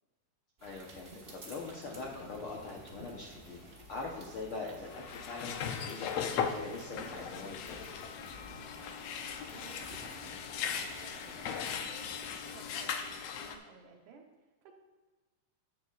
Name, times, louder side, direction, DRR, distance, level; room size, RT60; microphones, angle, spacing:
voice 1, 0.6-3.6 3.9-7.9, left 3 dB, 75° left, -1 dB, 1.2 m, -43 dB
sound 1, 0.6-13.2, right 2 dB, 40° right, 0.8 m, -54 dB
sound 2, 1.8-11.4, left 1 dB, 40° left, 3.0 m, -55 dB
sound 3, 4.8-13.5, left 7 dB, 90° left, 1.4 m, -38 dB
voice 2, 8.7-14.7, right 5 dB, 75° right, 2 dB, 2.5 m, -57 dB
11.0 x 8.4 x 2.4 m, 1.3 s
omnidirectional pair, 3.7 m